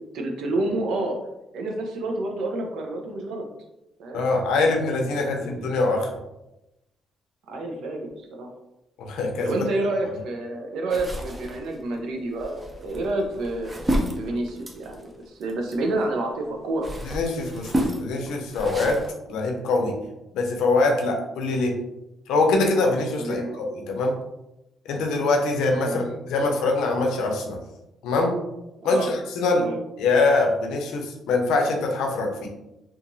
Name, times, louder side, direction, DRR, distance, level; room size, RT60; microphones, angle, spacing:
voice 1, 0.1-1.2 1.5-3.5 4.0-4.2 5.1-5.8 7.5-8.5 9.4-13.8 14.2-16.9 23.2-23.5 25.8-26.1 28.8-29.1 29.5-29.8, right 2 dB, 80° right, 2 dB, 0.5 m, -29 dB
voice 2, 4.1-6.1 9.0-9.6 17.0-19.0 19.3-20.0 20.3-21.8 22.3-24.1 24.9-27.6 28.0-28.4 28.8-29.7 30.0-32.5, left 3 dB, 90° left, 1 dB, 0.5 m, -23 dB
sound 1, 10.9-16.1 16.5-19.1, equal, 20° right, 0.5 m, -31 dB
2.8 x 2.4 x 2.6 m, 0.93 s
cardioid pair, 90°, 0 cm